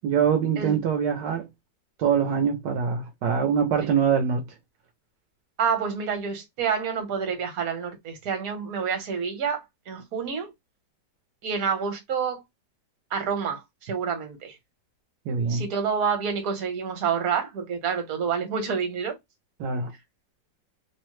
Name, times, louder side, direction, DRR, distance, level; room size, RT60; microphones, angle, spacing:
voice 1, 0.0-1.5 2.0-4.4 15.3-15.6 19.6-19.9, right 7 dB, 80° right, 1.2 m, -24 dB
voice 2, 5.6-10.5 11.4-12.4 13.1-14.6 15.5-19.2, right 6 dB, 60° right, 1.3 m, -28 dB
3.1 x 2.0 x 3.1 m
omnidirectional pair, 2.0 m